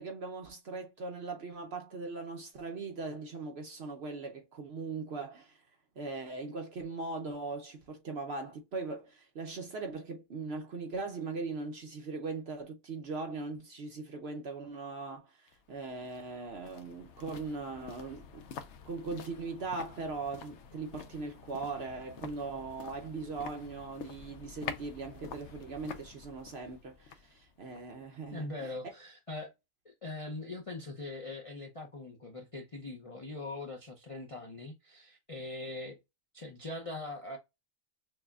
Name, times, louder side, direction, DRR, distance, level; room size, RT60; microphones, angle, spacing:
voice 1, 0.0-5.6 6.0-18.5 18.8-28.7, right 3 dB, 55° right, 0.8 m, -40 dB
sound 1, 15.5-28.6 28.9-29.0, left 7 dB, 60° left, 0.8 m, -48 dB
voice 2, 28.3-29.5 29.8-36.0 36.3-37.4, left 2 dB, 40° left, 0.5 m, -41 dB
6.4 x 2.2 x 2.3 m
omnidirectional pair, 1.6 m